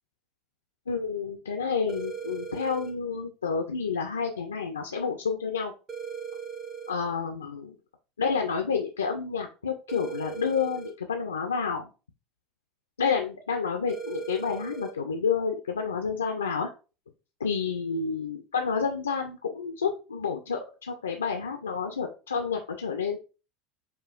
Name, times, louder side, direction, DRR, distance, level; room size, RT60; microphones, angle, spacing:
voice 1, 0.9-5.7 6.9-7.7 8.2-11.9 13.0-16.7 17.4-23.2, left 5 dB, 80° left, 4 dB, 0.3 m, -29 dB
sound 1, 1.9-2.9 5.9-6.9 9.9-10.9 13.9-14.9, right 6 dB, 30° right, 0.7 m, -38 dB
4.9 x 2.3 x 2.3 m, 0.32 s
figure-of-eight pair, 75°, 0 cm